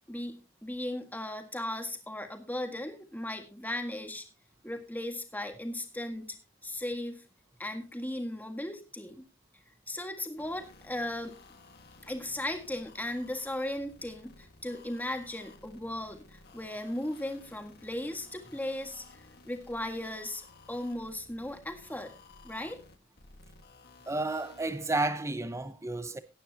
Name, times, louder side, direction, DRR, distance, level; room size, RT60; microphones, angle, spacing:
voice 1, 0.1-4.2 4.6-6.3 6.6-7.2 7.6-9.2 9.9-11.4 12.0-20.4 20.7-22.1 22.4-22.8, left 1 dB, 10° left, 1.7 m, -37 dB
sound 1, 10.4-24.9, left 3 dB, 55° left, 1.6 m, -56 dB
voice 2, 24.1-26.2, right 2 dB, 15° right, 0.7 m, -31 dB
17.5 x 9.0 x 2.8 m
head